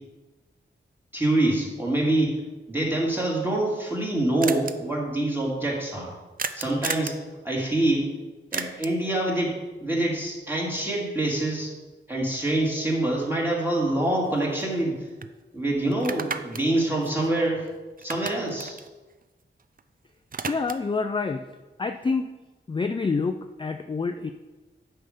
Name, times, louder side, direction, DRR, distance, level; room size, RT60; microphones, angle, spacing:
voice 1, 1.1-2.4 2.7-6.1 6.5-7.2 7.4-8.1 8.5-11.7 12.1-15.0 15.5-17.7 18.0-18.8, right 1 dB, 10° right, -4 dB, 2.8 m, -25 dB
sound 1, 4.4-4.7 6.4-7.2 8.5-9.1 13.3-13.4 13.7-14.9 15.2-15.3 15.9-17.7 18.0-19.8 20.1-21.0, right 5 dB, 45° right, 0.5 m, -34 dB
voice 2, 20.5-21.4 21.8-22.3 22.7-24.3, left 4 dB, 25° left, 7 dB, 0.4 m, -27 dB
8.8 x 5.7 x 5.1 m, 1.2 s
wide cardioid pair, 75°, 20 cm